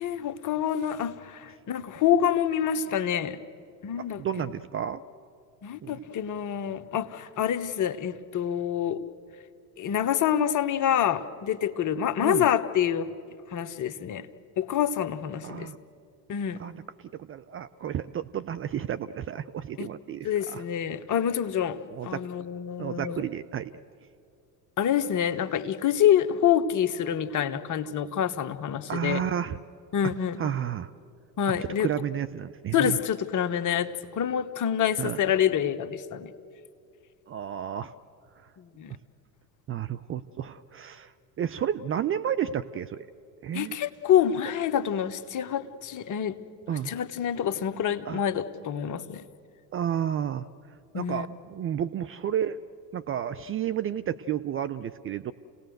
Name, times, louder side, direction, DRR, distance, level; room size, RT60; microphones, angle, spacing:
voice 1, 0.0-3.4 3.8-4.2 5.6-9.0 9.8-13.1 13.5-14.3 14.6-15.7 16.3-16.6 19.8-19.9 20.2-23.2 24.8-29.2 29.9-30.5 31.4-31.9 32.7-36.3 38.8-38.9 43.5-46.3 46.8-49.2 50.9-51.3, left 9 dB, 40° left, 10 dB, 1.2 m, -27 dB
voice 2, 4.0-5.0 5.8-6.0 12.2-12.5 15.4-15.8 16.6-16.8 17.1-20.6 21.9-22.2 22.8-23.7 28.9-29.6 30.0-30.1 30.4-30.9 31.5-33.0 35.0-35.2 37.3-37.9 39.7-41.1 41.4-43.1 43.4-43.7 46.7-46.9 48.1-48.2 49.7-50.5 50.9-52.6 52.9-55.3, right 9 dB, 30° right, 12 dB, 0.5 m, -31 dB
29.0 x 18.0 x 7.9 m, 2.5 s
hypercardioid pair, 75°, 48 cm